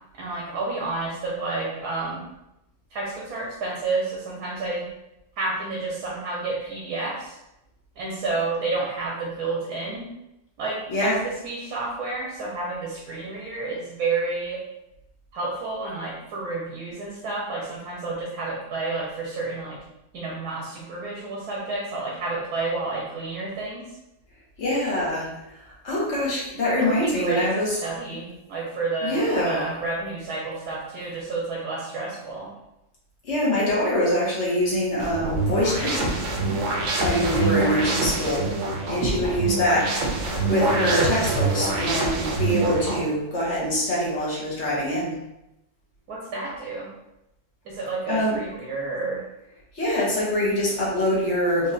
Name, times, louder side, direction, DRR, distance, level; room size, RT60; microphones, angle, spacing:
voice 1, 0.2-2.2 2.9-4.9 5.4-7.4 8.0-10.1 10.6-14.6 15.3-19.8 20.1-23.8 26.8-32.5 37.3-37.5 46.1-46.9 47.6-49.2, right 3 dB, 85° right, -4 dB, 1.3 m, -30 dB
voice 2, 24.6-27.8 29.0-29.7 33.2-36.1 37.0-38.5 38.9-45.1 48.1-48.4 49.7-51.7, equal, 50° left, -6 dB, 1.5 m, -24 dB
sound 1, 35.0-43.0, right 2 dB, 60° right, 0.9 m, -25 dB
4.5 x 2.8 x 2.5 m, 0.89 s
omnidirectional pair, 1.6 m